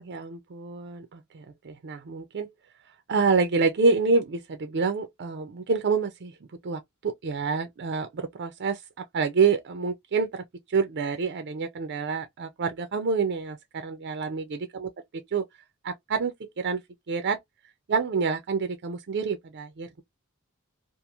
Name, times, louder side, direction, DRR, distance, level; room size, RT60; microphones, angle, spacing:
voice 1, 0.0-2.5 3.1-6.3 6.6-8.8 9.1-10.4 10.7-14.9 15.3-15.4 15.8-16.8 17.1-17.4 17.9-20.0, right 4 dB, 50° right, 0.5 m, -27 dB
2.9 x 2.5 x 2.4 m
head